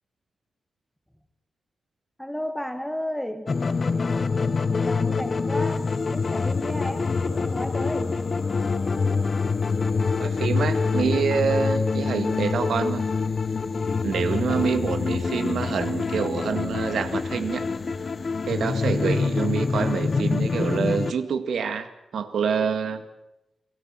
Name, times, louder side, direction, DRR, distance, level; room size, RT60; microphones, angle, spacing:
voice 1, 2.2-3.5 4.8-8.2, equal, ahead, 9 dB, 1.8 m, -33 dB
sound 1, 3.5-21.1, left 4 dB, 35° left, 0.9 m, -25 dB
voice 2, 10.2-13.0 14.0-17.6 18.5-23.0, right 6 dB, 90° right, 9 dB, 2.0 m, -26 dB
29.5 x 20.0 x 7.6 m, 0.93 s
wide cardioid pair, 175°, 0 cm